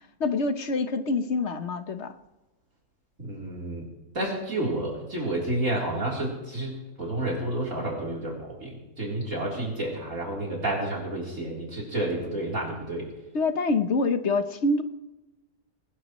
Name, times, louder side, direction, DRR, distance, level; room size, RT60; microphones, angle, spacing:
voice 1, 0.2-2.1 13.3-14.8, left 3 dB, 50° left, 8 dB, 1.2 m, -26 dB
voice 2, 3.2-3.9 4.1-13.1, right 1 dB, 50° right, -2 dB, 4.1 m, -30 dB
21.5 x 19.5 x 3.1 m, 1.0 s
omnidirectional pair, 1.7 m